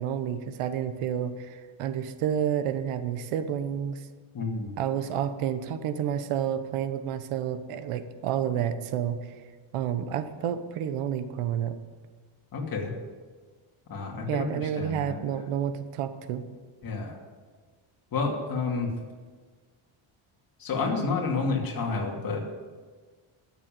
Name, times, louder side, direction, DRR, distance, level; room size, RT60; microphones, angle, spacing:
voice 1, 0.0-4.1 4.8-9.2 9.7-11.8 14.3-16.4, right 9 dB, 85° right, 11 dB, 1.2 m, -30 dB
voice 2, 4.3-4.7 12.5-12.9 13.9-15.2 16.8-17.2 18.1-18.9 20.6-22.4, left 4 dB, 45° left, 0 dB, 2.7 m, -30 dB
13.0 x 7.5 x 9.0 m, 1.5 s
cardioid pair, 145°, 50 cm